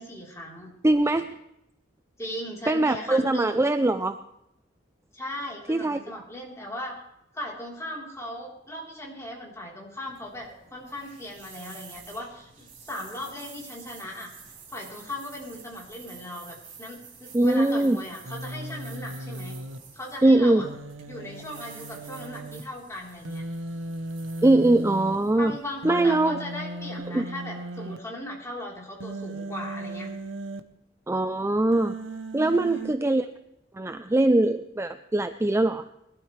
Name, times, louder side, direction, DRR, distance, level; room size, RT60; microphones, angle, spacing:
voice 1, 0.0-0.7 2.2-3.6 5.1-7.0 7.3-14.3 14.7-19.6 19.9-20.7 21.1-23.4 25.4-30.1 32.4-32.9, left 1 dB, 15° left, -3 dB, 3.8 m, -38 dB
voice 2, 0.8-1.4 2.7-4.2 5.7-6.0 17.3-18.0 20.2-20.7 24.4-25.6 25.8-26.4 27.1-27.3 31.1-32.0 32.3-33.3 33.7-35.8, right 2 dB, 15° right, 9 dB, 0.4 m, -22 dB
sound 1, 9.9-26.1, right 5 dB, 45° right, 3.7 m, -49 dB
Human voice, 18.2-19.8 20.6-22.6 23.2-25.2 25.8-28.0 29.0-30.6 31.7-33.0, right 1 dB, 75° right, 1.0 m, -37 dB
21.5 x 12.5 x 3.3 m, 0.85 s
head